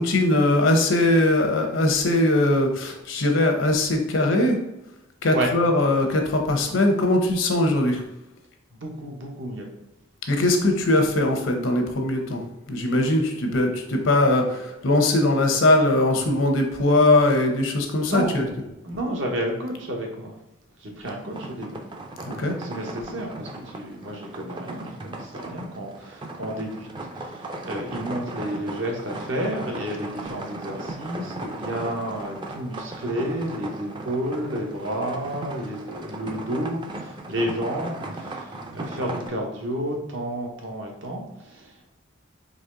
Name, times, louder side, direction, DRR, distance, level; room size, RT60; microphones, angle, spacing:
voice 1, 0.0-4.6 5.2-8.0 10.3-18.4 22.4-22.6, left 2 dB, 75° left, 4 dB, 0.8 m, -21 dB
voice 2, 8.7-9.7 18.1-18.4 18.8-20.3 20.8-21.8 22.3-26.9 27.1-41.9, right 1 dB, 70° right, 1 dB, 1.0 m, -31 dB
sound 1, 21.0-39.3, right 2 dB, 25° right, 0.5 m, -37 dB
4.1 x 3.1 x 3.8 m, 0.91 s
head